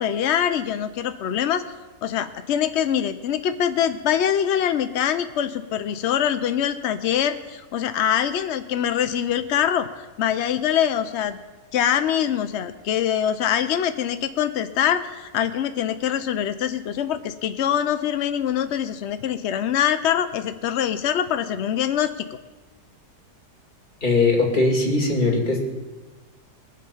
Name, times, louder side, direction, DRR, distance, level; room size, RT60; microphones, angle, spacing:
voice 1, 0.0-1.6 2.0-11.4 11.7-22.2, left 9 dB, 80° left, 10 dB, 0.6 m, -24 dB
voice 2, 24.0-25.6, left 3 dB, 25° left, -1 dB, 2.6 m, -20 dB
21.5 x 7.6 x 5.5 m, 1.2 s
omnidirectional pair, 1.8 m